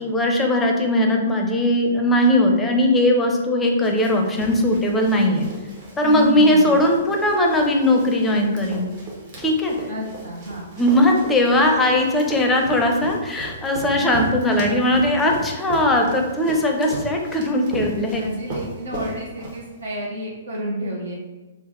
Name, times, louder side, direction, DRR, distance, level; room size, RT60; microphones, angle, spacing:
voice 1, 0.0-5.4 6.0-8.9 9.4-9.8 10.8-18.3, left 1 dB, 10° left, 1 dB, 0.5 m, -19 dB
Run, 3.8-20.0, right 1 dB, 45° right, 0.9 m, -36 dB
voice 2, 6.0-6.8 9.9-10.7 13.9-14.8 18.2-21.2, equal, 70° right, -3 dB, 0.6 m, -30 dB
3.3 x 2.0 x 3.8 m, 1.2 s
figure-of-eight pair, 115°, 0 cm